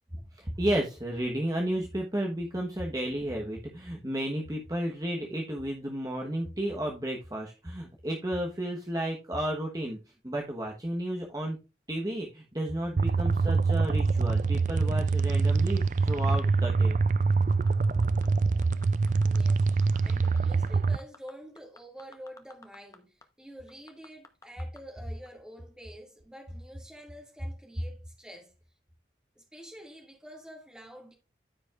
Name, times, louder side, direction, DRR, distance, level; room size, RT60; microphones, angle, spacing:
voice 1, 0.3-10.0 10.2-11.6 11.9-17.0, right 1 dB, 20° right, 1.1 m, -32 dB
sound 1, 13.0-21.0, right 4 dB, 45° right, 0.3 m, -25 dB
sound 2, 17.5-18.3 18.6-19.5 19.8-20.4 20.7-23.0 23.2-23.3 23.7-24.8 25.3-25.4, left 3 dB, 20° left, 0.9 m, -51 dB
voice 2, 19.2-28.5 29.4-31.1, equal, 5° right, 2.1 m, -48 dB
13.5 x 5.1 x 2.4 m
head